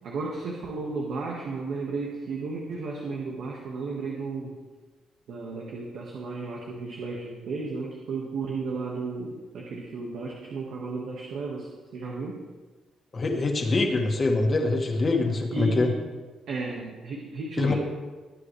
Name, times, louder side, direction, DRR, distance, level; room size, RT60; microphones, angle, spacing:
voice 1, 0.0-4.6 5.3-12.5 15.5-16.0 16.5-17.7, right 3 dB, 70° right, -2 dB, 1.7 m, -34 dB
voice 2, 13.1-15.9 17.6-17.7, left 3 dB, 35° left, 2 dB, 2.0 m, -24 dB
19.5 x 8.3 x 3.4 m, 1.3 s
cardioid pair, 90°, 0 cm